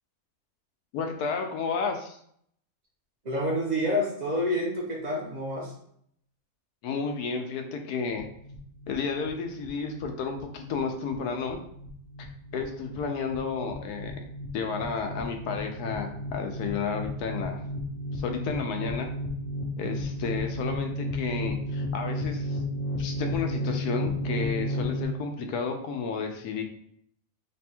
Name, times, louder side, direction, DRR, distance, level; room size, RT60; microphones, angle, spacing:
voice 1, 0.9-2.2 6.8-8.3 8.9-11.6 12.2-12.3 12.5-14.2 14.5-17.6 18.1-19.1 19.8-22.6 23.0-26.6, left 5 dB, 85° left, 4 dB, 1.1 m, -32 dB
voice 2, 3.2-5.7, left 1 dB, 40° right, -3 dB, 0.6 m, -28 dB
sound 1, 8.1-25.0, left 1 dB, 60° left, 0.8 m, -33 dB
3.3 x 2.2 x 4.2 m, 0.67 s
omnidirectional pair, 1.6 m